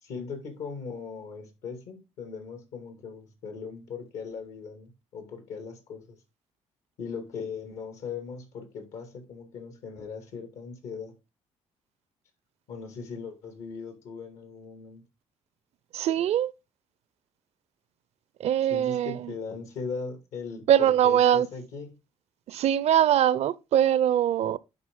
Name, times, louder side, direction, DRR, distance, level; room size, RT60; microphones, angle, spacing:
voice 1, 0.0-6.2 7.0-11.1 12.7-15.0 18.7-22.0, left 5 dB, 80° left, 2.4 m, -39 dB
voice 2, 15.9-16.5 18.4-19.3 20.7-21.5 22.5-24.6, right 10 dB, 65° right, 0.5 m, -22 dB
10.5 x 4.1 x 3.7 m
cardioid pair, 80°, 12 cm